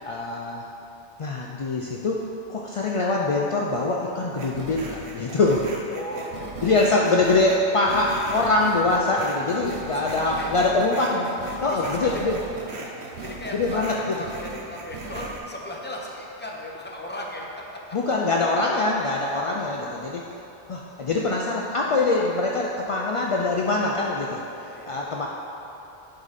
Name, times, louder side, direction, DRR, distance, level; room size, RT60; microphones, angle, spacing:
voice 1, 0.0-0.6 1.2-2.2 2.5-5.6 6.6-11.3 11.6-12.4 13.5-14.2 17.9-20.2 20.7-24.4 24.9-25.3, left 2 dB, 55° left, -2 dB, 0.3 m, -23 dB
sound 1, 4.3-15.4, right 3 dB, 75° right, 1.0 m, -38 dB
voice 2, 5.9-6.7 9.9-10.5 11.6-12.2 12.7-12.8 13.2-18.0 24.6-25.1, left 1 dB, 10° left, -2 dB, 0.7 m, -37 dB
7.8 x 5.0 x 4.1 m, 2.9 s
omnidirectional pair, 1.1 m